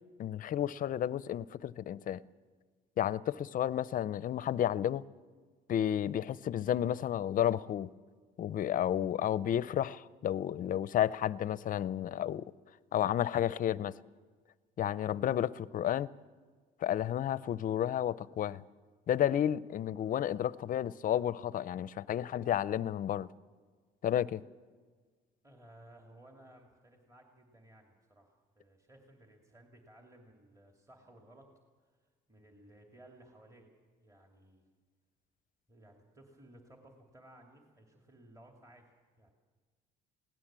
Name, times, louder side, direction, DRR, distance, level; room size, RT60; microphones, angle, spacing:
voice 1, 0.2-2.2 3.0-5.0 5.7-7.9 8.4-12.5 12.9-13.9 14.8-16.1 16.8-18.6 19.1-23.3 24.0-24.4, left 10 dB, 50° left, 0.6 m, -31 dB
voice 2, 25.4-31.5 31.8-31.9 32.3-33.7 34.0-34.7 35.7-39.3, right 1 dB, 20° right, 2.6 m, -58 dB
21.5 x 17.5 x 7.5 m
cardioid pair, 100°, 18 cm